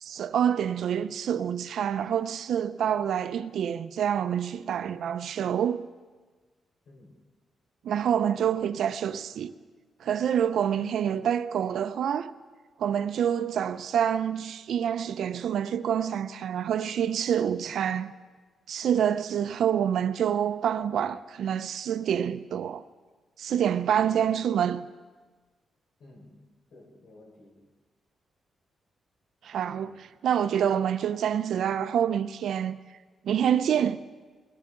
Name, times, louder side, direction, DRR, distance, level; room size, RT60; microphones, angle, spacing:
voice 1, 0.0-5.9 7.8-9.5 10.0-12.3 12.8-18.1 18.7-22.8 23.4-24.9 29.4-32.8 33.2-34.0, right 9 dB, 70° right, 0.6 m, -27 dB
voice 2, 6.8-7.2 26.0-27.7, left 1 dB, 80° left, 4.7 m, -53 dB
21.5 x 16.5 x 3.8 m
wide cardioid pair, 155°, 0 cm